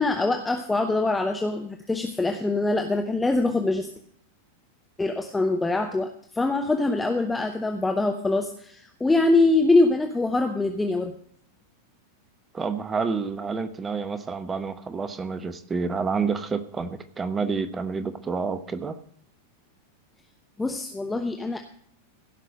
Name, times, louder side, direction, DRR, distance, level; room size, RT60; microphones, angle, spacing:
voice 1, 0.0-3.9 5.0-11.1 20.6-21.6, left 2 dB, 10° left, 5 dB, 1.0 m, -24 dB
voice 2, 12.5-19.0, right 5 dB, 20° right, 11 dB, 0.9 m, -29 dB
16.0 x 6.0 x 6.5 m, 0.63 s
figure-of-eight pair, 90°, 0 cm